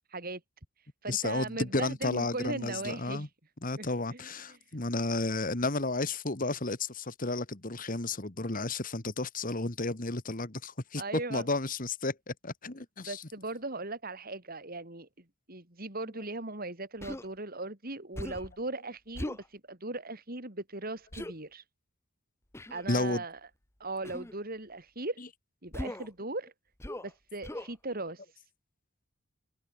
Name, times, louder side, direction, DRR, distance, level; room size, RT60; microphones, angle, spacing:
voice 1, 0.1-0.4 0.8-3.3 3.8-4.6 11.0-11.5 13.0-15.1 15.5-21.6 22.7-23.4 23.8-25.2 25.6-26.5 27.0-28.4, right 2 dB, 45° right, 4.1 m, -38 dB
voice 2, 1.1-3.3 3.6-11.0 11.3-13.2 22.9-23.2, left 2 dB, 40° left, 1.8 m, -32 dB
Human voice, 17.0-17.3 18.1-18.5 19.1-19.5 21.1-21.3 22.5-22.8 24.0-24.3 25.7-26.1 26.8-27.1 27.4-27.7, left 1 dB, 10° left, 1.2 m, -39 dB
head